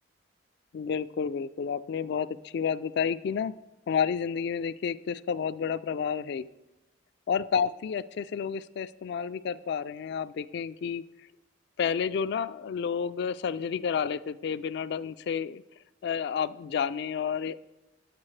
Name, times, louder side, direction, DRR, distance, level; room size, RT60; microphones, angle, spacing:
voice 1, 0.7-3.6 3.9-6.5 7.3-11.0 11.8-15.6 16.0-17.6, left 7 dB, 60° left, 14 dB, 0.3 m, -30 dB
10.0 x 8.7 x 3.2 m, 1.0 s
head